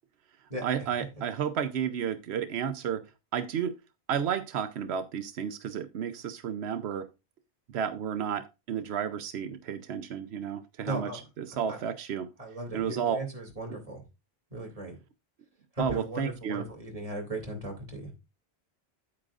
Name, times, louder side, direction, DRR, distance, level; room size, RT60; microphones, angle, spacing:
voice 1, 0.6-3.1 3.3-3.7 4.1-7.1 7.7-12.3 12.7-13.2 15.8-16.7, right 8 dB, 90° right, 1.0 m, -32 dB
voice 2, 10.8-11.2 11.5-11.8 12.4-14.0 14.5-15.0 15.7-18.1, right 1 dB, 35° right, 2.8 m, -37 dB
8.7 x 8.6 x 2.4 m
omnidirectional pair, 1.1 m